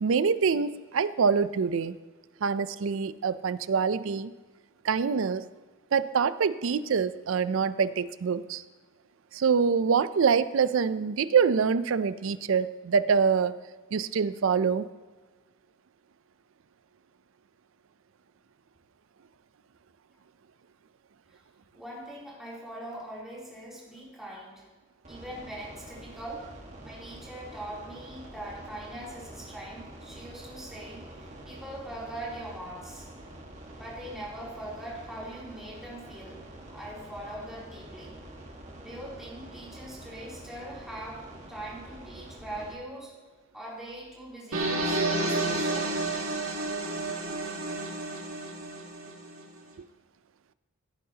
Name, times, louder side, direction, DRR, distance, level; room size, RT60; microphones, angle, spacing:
voice 1, 0.0-2.0 2.4-4.3 4.8-5.4 5.9-8.6 9.3-13.5 13.9-14.9, right 6 dB, 70° right, 15 dB, 0.4 m, -25 dB
voice 2, 21.7-24.6 25.1-26.5 26.8-33.1 33.8-36.4 36.7-38.2 38.8-43.1 43.5-45.9, right 1 dB, ahead, -7 dB, 3.1 m, -42 dB
sound 1, 25.0-42.7, right 1 dB, 35° right, 1.6 m, -46 dB
sound 2, 44.5-49.4, right 2 dB, 90° right, 2.2 m, -30 dB
16.5 x 9.4 x 2.8 m, 1.4 s
head